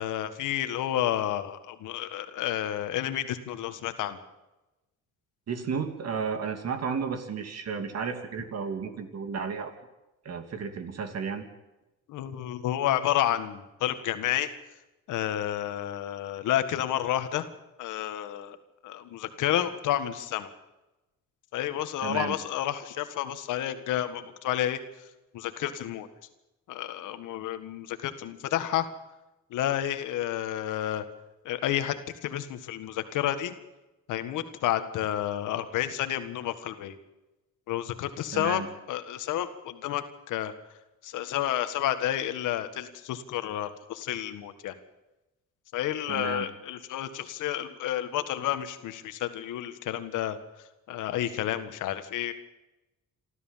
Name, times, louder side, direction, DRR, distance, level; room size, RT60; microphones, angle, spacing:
voice 1, 0.0-4.2 12.1-14.5 15.1-17.5 17.8-18.6 18.8-20.5 21.5-26.1 26.7-28.9 29.5-31.0 31.5-33.5 34.1-37.0 37.7-38.6 38.9-40.5 41.0-44.8 45.7-52.3, left 12 dB, 90° left, 10 dB, 1.7 m, -30 dB
voice 2, 5.5-9.7 10.2-11.4 22.0-22.3 38.3-38.7 46.1-46.5, right 6 dB, 55° right, 7 dB, 3.0 m, -33 dB
26.5 x 13.5 x 7.4 m, 1.0 s
cardioid pair, 90°, 30 cm